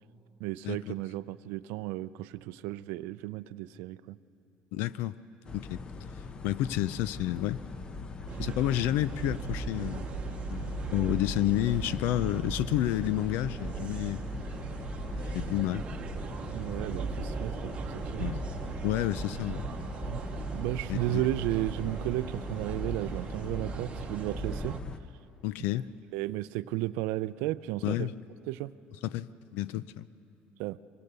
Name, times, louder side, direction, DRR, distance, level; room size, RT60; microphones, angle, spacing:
voice 1, 0.4-4.2 8.4-8.5 16.5-18.3 20.1-20.2 20.5-24.8 26.1-28.1 28.5-28.7 30.6-30.8, right 16 dB, 85° right, 16 dB, 0.5 m, -34 dB
voice 2, 4.7-5.2 5.5-5.8 6.4-7.6 8.4-10.1 10.5-14.2 15.1-16.0 16.6-16.7 18.2-18.4 18.8-19.6 20.9-21.3 25.4-25.9 27.8-28.2 29.0-30.0, left 14 dB, 80° left, 18 dB, 0.5 m, -30 dB
sound 1, 5.4-25.0, left 4 dB, 30° left, 0.8 m, -41 dB
sound 2, 8.3-24.8, right 6 dB, 35° right, 0.9 m, -38 dB
24.5 x 20.0 x 6.8 m, 2.9 s
cardioid pair, 140°, 3 cm